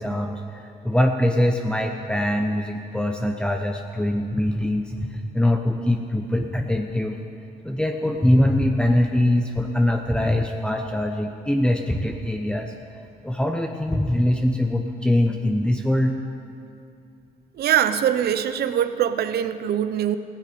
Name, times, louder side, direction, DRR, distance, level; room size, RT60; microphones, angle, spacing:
voice 1, 0.0-7.2 7.6-12.7 13.2-16.1, left 1 dB, 5° left, 3 dB, 1.0 m, -23 dB
voice 2, 17.6-20.2, right 10 dB, 75° right, 12 dB, 0.7 m, -22 dB
16.0 x 10.5 x 8.6 m, 2.5 s
cardioid pair, 85°, 16 cm